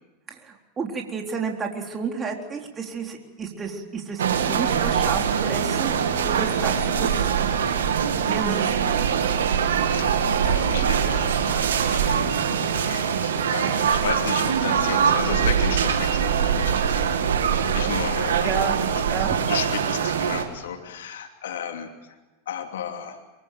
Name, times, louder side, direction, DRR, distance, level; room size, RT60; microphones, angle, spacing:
voice 1, 0.3-7.3 8.2-8.9 18.4-18.7 19.1-19.4, right 5 dB, 25° right, 1 dB, 3.7 m, -31 dB
sound 1, 4.2-20.4, right 7 dB, 85° right, 2.5 m, -23 dB
voice 2, 9.9-17.3 17.7-22.2 22.5-23.2, left 8 dB, 80° left, 5 dB, 2.9 m, -34 dB
24.0 x 22.5 x 7.6 m, 1.1 s
hypercardioid pair, 105°, 0 cm